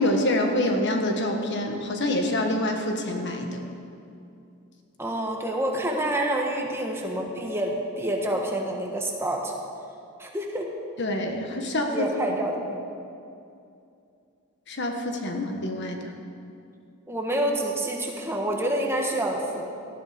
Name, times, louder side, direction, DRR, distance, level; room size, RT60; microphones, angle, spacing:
voice 1, 0.0-3.6 11.0-12.0 14.7-16.1, left 1 dB, 55° left, 3 dB, 1.5 m, -26 dB
voice 2, 5.0-9.5 10.2-10.7 11.6-12.8 17.1-19.7, right 1 dB, 10° right, 1 dB, 1.5 m, -28 dB
18.5 x 13.0 x 5.2 m, 2.6 s
head